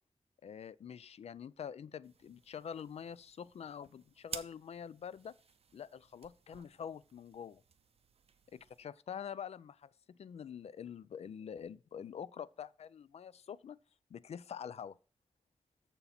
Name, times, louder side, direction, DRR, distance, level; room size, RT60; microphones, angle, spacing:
voice 1, 0.4-5.3 5.7-7.6 8.8-13.8 14.1-15.0, left 8 dB, 85° left, 0.4 m, -46 dB
sound 1, 2.0-8.8, right 6 dB, 75° right, 0.6 m, -53 dB
7.1 x 6.9 x 4.2 m
wide cardioid pair, 130°, 11 cm